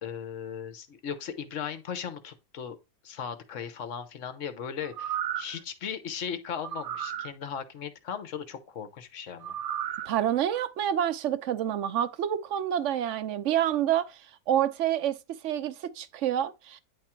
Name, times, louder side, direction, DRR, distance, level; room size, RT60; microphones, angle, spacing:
voice 1, 0.0-2.8 3.0-9.5, left 7 dB, 60° left, 1.3 m, -37 dB
sound 1, 4.8-5.6 6.6-7.3 9.4-10.1 10.6-10.7, right 10 dB, 85° right, 0.4 m, -33 dB
voice 2, 10.1-15.2 15.4-16.8, right 10 dB, 60° right, 0.9 m, -28 dB
9.9 x 3.6 x 4.4 m
omnidirectional pair, 1.6 m